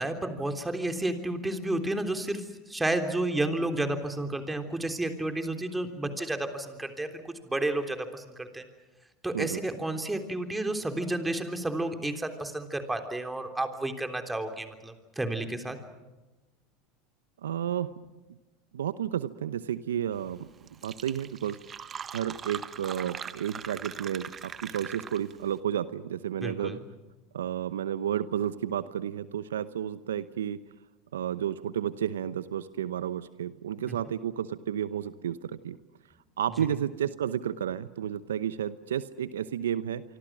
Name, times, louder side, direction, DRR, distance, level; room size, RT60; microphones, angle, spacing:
voice 1, 0.0-8.6 9.2-15.8 26.4-26.8 33.9-34.0, right 1 dB, 10° right, 6 dB, 3.4 m, -31 dB
voice 2, 17.4-17.9 18.7-20.5 20.8-21.6 22.1-26.8 27.3-30.6 31.1-35.8 36.4-40.0, right 10 dB, 85° right, 15 dB, 0.8 m, -32 dB
Fill (with liquid), 20.4-20.5 20.7-25.5, right 7 dB, 30° right, 1.4 m, -41 dB
26.5 x 25.0 x 6.2 m, 1.1 s
hypercardioid pair, 85°, 0 cm